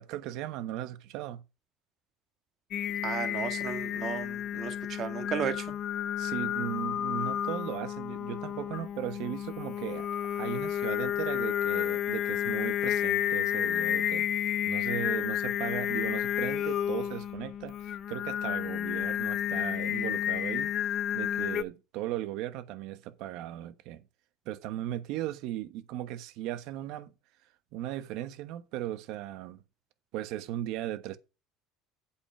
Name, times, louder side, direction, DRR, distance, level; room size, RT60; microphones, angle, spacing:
voice 1, 0.0-1.4 6.2-10.1 10.3-14.3 14.6-20.7 21.1-24.0 24.4-27.1 27.7-29.6 30.1-31.2, right 13 dB, 70° right, 1.1 m, -37 dB
Singing, 2.7-21.6, left 10 dB, 45° left, 0.6 m, -31 dB
voice 2, 3.0-5.7, right 8 dB, 45° right, 1.8 m, -34 dB
8.2 x 5.7 x 5.9 m
cardioid pair, 125°, 0 cm